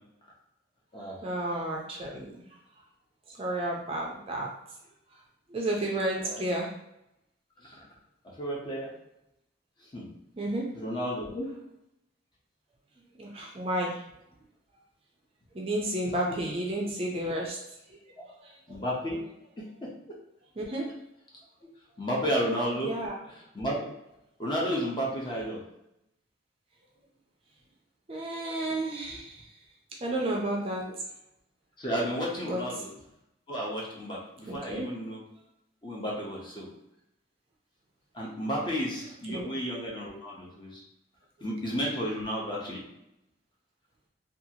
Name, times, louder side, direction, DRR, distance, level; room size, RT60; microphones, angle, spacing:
voice 1, 1.2-2.4 3.4-4.5 5.5-6.7 10.4-10.7 13.2-14.0 15.5-17.6 18.4-18.8 20.6-20.9 22.8-23.2 28.1-29.4 30.0-30.9 32.4-32.6 34.5-34.9 39.3-39.5, right 1 dB, 30° right, -1 dB, 0.4 m, -31 dB
voice 2, 8.4-8.9 9.9-10.1 10.7-11.5 18.7-19.2 19.6-20.2 22.0-22.9 23.5-23.9 24.4-25.6 31.8-32.9 33.5-35.2 35.8-36.7 38.1-40.8 41.4-42.8, equal, 25° left, -3 dB, 0.7 m, -32 dB
2.7 x 2.4 x 2.7 m, 0.84 s
head